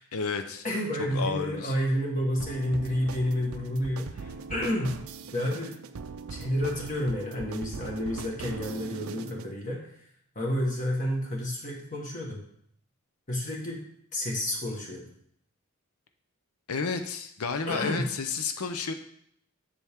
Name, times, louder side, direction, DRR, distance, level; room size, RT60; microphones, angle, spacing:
voice 1, 0.1-0.6 1.1-1.7 16.7-18.9, left 5 dB, 85° left, 7 dB, 0.7 m, -31 dB
voice 2, 0.6-5.0 5.3-5.7 6.3-10.1 10.3-12.4 13.3-13.8 14.1-15.0 17.7-18.1, left 1 dB, 35° left, -2 dB, 1.4 m, -30 dB
sound 1, 2.4-9.5, right 5 dB, 75° right, 0.4 m, -41 dB
7.4 x 7.0 x 3.6 m, 0.68 s
head